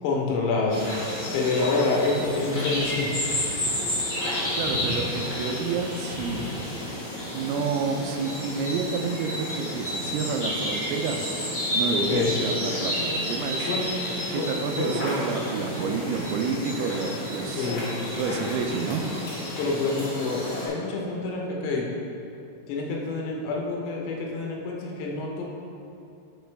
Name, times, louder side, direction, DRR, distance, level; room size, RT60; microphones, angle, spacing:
voice 1, 0.0-0.8 1.3-3.1 12.1-12.4 13.5-13.8 14.3-14.4 14.7-14.9 17.4-18.0 19.6-21.9 22.7-25.4, left 3 dB, 85° left, -2 dB, 3.8 m, -27 dB
sound 1, 0.7-20.7, left 1 dB, 70° left, 1.1 m, -31 dB
voice 2, 4.5-6.4 7.3-11.3 11.7-13.7 14.3-17.7 18.2-19.1, right 5 dB, 85° right, 4 dB, 3.3 m, -29 dB
10.5 x 6.2 x 3.4 m, 2.6 s
omnidirectional pair, 5.9 m